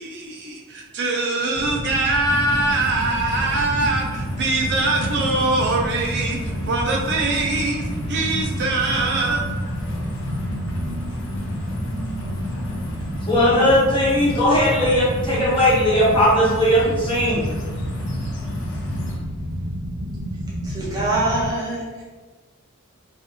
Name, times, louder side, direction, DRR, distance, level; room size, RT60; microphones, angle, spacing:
voice 1, 0.0-9.4, right 2 dB, 50° right, 0 dB, 0.3 m, -23 dB
sound 1, 1.5-21.5, equal, 85° right, 0.7 m, -31 dB
sound 2, 2.2-19.2, equal, 55° left, 0.5 m, -31 dB
voice 2, 13.3-17.4, equal, 25° left, -8 dB, 1.0 m, -18 dB
voice 3, 20.6-22.0, right 2 dB, 20° right, -7 dB, 0.7 m, -24 dB
2.7 x 2.4 x 2.6 m, 1.3 s
head